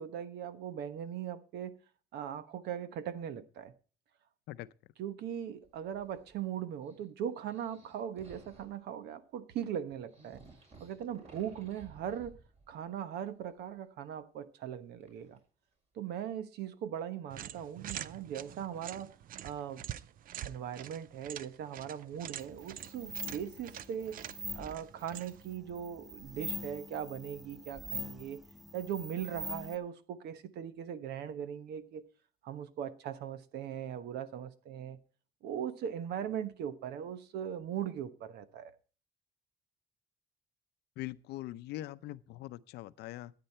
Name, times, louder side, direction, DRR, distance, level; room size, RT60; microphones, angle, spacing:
voice 1, 0.0-1.7 2.1-3.7 5.0-10.4 10.8-12.4 12.7-15.4 15.9-19.1 19.4-19.9 20.4-24.2 24.5-28.4 28.7-32.0 32.4-35.0 35.4-38.7, right 9 dB, 75° right, 1.1 m, -39 dB
sound 1, 5.6-6.5 6.8-8.8 9.6-9.7 9.9-13.0 13.3-13.8 15.0-15.4 16.1-16.2 18.1-18.2 21.2-24.4, right 3 dB, 40° right, 5.8 m, -59 dB
sound 2, 17.3-25.5, right 11 dB, 55° right, 0.5 m, -46 dB
sound 3, 22.4-29.8, left 1 dB, ahead, 1.1 m, -44 dB
voice 2, 41.0-43.3, left 15 dB, 80° left, 0.6 m, -42 dB
13.5 x 9.0 x 4.4 m
cardioid pair, 110°, 17 cm